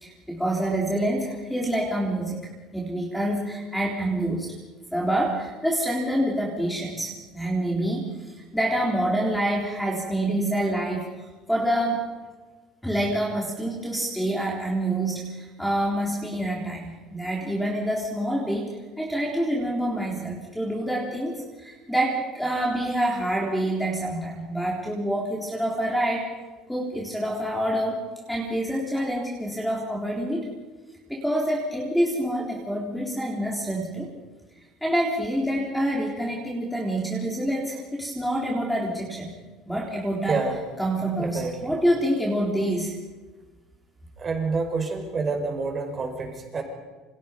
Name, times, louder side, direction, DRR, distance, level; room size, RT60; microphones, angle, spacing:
voice 1, 0.0-2.4 2.7-4.6 4.9-12.1 12.8-26.3 26.7-28.0 28.3-30.5 31.1-34.1 34.8-39.3 39.7-40.4 40.8-43.0, right 1 dB, ahead, -2 dB, 3.8 m, -27 dB
voice 2, 41.2-41.7 44.2-46.6, right 4 dB, 25° right, 3 dB, 5.3 m, -28 dB
29.0 x 28.0 x 5.3 m, 1.3 s
cardioid pair, 165°, 0 cm